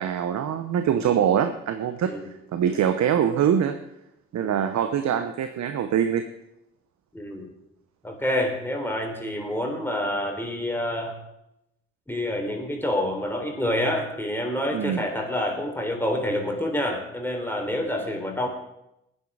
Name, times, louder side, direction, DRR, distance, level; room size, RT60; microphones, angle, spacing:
voice 1, 0.0-2.1 2.5-3.8 4.3-6.3 14.7-15.1, right 9 dB, 60° right, 9 dB, 1.0 m, -24 dB
voice 2, 7.1-7.5 8.0-11.2 12.1-18.5, left 1 dB, 5° left, 2 dB, 3.6 m, -28 dB
16.0 x 9.8 x 4.9 m, 0.85 s
hypercardioid pair, 45°, 32 cm